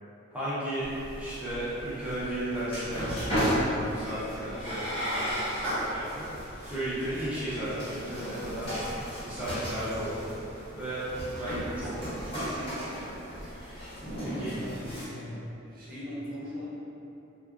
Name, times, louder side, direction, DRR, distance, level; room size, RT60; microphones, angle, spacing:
voice 1, 0.3-0.9 1.2-3.3 3.6-8.7 9.2-10.4 10.7-12.9 13.4-13.8 14.4-14.5, right 1 dB, 5° right, -12 dB, 0.6 m, -35 dB
sound 1, 0.8-15.0, equal, 25° left, 1.0 m, -34 dB
voice 2, 14.1-15.3 15.7-16.7, left 1 dB, 45° right, -9 dB, 0.8 m, -40 dB
3.5 x 2.4 x 2.3 m, 2.8 s
head